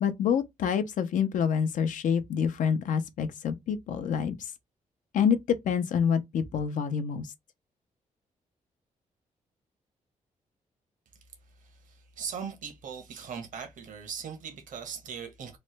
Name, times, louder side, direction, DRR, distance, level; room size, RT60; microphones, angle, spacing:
voice 1, 0.0-4.3 5.1-7.3, left 7 dB, 70° left, 0.6 m, -27 dB
voice 2, 11.6-15.6, right 6 dB, 75° right, 1.0 m, -39 dB
3.1 x 2.1 x 3.1 m
cardioid pair, 95°, 14 cm